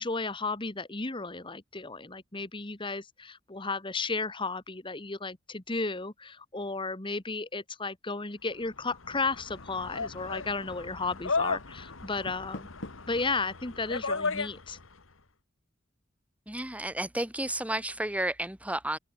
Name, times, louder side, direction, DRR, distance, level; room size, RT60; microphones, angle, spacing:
voice 1, 0.0-12.7 13.1-14.8, left 3 dB, 25° left, 1.6 m, -34 dB
sound 1, 8.6-15.0, left 4 dB, 85° left, 2.0 m, -35 dB
Door, 12.0-13.2, left 1 dB, 65° left, 2.0 m, -45 dB
voice 2, 16.5-19.0, right 1 dB, 5° right, 2.8 m, -32 dB
open air
head